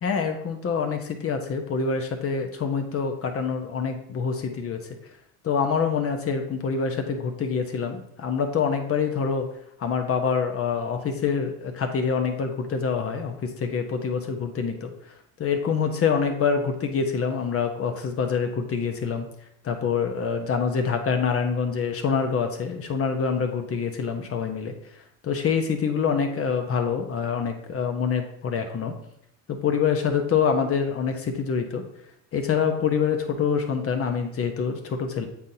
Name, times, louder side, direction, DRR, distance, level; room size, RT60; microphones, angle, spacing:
voice 1, 0.0-5.0 5.4-9.5 9.8-14.9 15.4-19.3 19.6-24.7 25.2-28.9 29.5-31.8 32.3-35.3, left 6 dB, 35° left, 5 dB, 1.0 m, -26 dB
8.3 x 4.0 x 2.8 m, 0.72 s
supercardioid pair, 95°, 41 cm